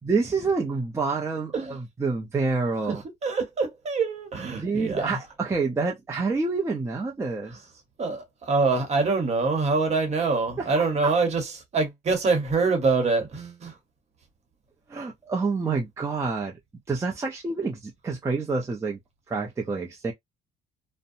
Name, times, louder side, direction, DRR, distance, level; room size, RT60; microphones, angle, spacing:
voice 1, 0.0-3.0 4.6-7.7 10.6-11.1 14.9-16.6 16.9-19.0 19.3-20.1, right 4 dB, 15° right, 0.5 m, -28 dB
voice 2, 3.2-5.1 8.0-13.7, right 4 dB, 40° right, 1.1 m, -25 dB
2.6 x 2.1 x 2.6 m
cardioid pair, 110°, 17 cm